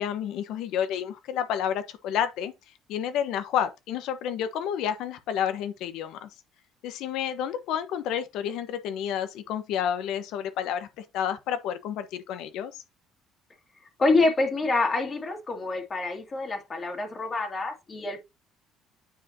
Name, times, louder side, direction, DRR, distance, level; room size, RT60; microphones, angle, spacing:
voice 1, 0.0-2.5 2.9-6.3 6.8-12.8, left 9 dB, 75° left, 1.2 m, -30 dB
voice 2, 14.0-18.2, left 3 dB, 30° left, 2.1 m, -26 dB
9.2 x 5.0 x 2.8 m
cardioid pair, 105°, 0 cm